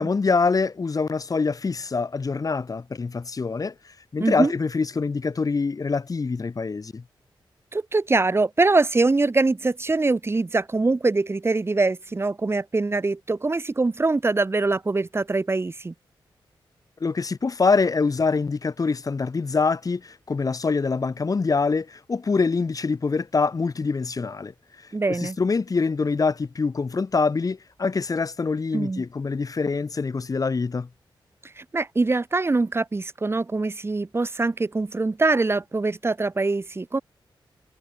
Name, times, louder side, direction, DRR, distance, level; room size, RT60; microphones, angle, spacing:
voice 1, 0.0-3.7 4.1-7.0 17.0-24.5 25.2-30.9, left 4 dB, 45° left, 7.9 m, -25 dB
voice 2, 4.2-4.5 7.7-15.9 24.9-25.4 28.7-29.0 31.4-37.0, right 3 dB, 30° right, 2.5 m, -23 dB
wide cardioid pair, 100°, 9 cm